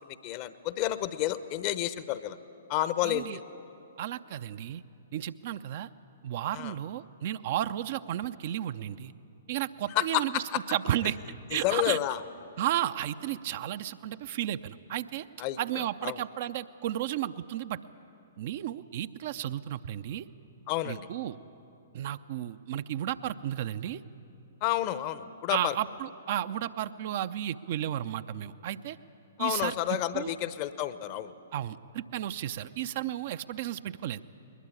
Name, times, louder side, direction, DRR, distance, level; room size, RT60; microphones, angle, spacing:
voice 1, 0.0-2.4 2.7-3.4 6.5-6.7 9.9-10.6 11.5-12.2 15.4-16.2 20.7-21.1 24.6-25.8 29.4-31.3, left 14 dB, 35° left, 14 dB, 0.8 m, -30 dB
voice 2, 3.0-3.4 4.0-4.8 5.1-5.9 6.2-9.1 9.5-10.4 10.7-11.2 11.5-12.0 12.6-15.3 15.6-17.8 18.4-20.3 20.9-21.4 21.9-24.0 25.5-29.0 29.4-29.7 30.1-30.3 31.5-34.2, right 12 dB, 45° right, 12 dB, 0.6 m, -33 dB
21.0 x 21.0 x 8.5 m, 2.8 s
figure-of-eight pair, 115°, 0 cm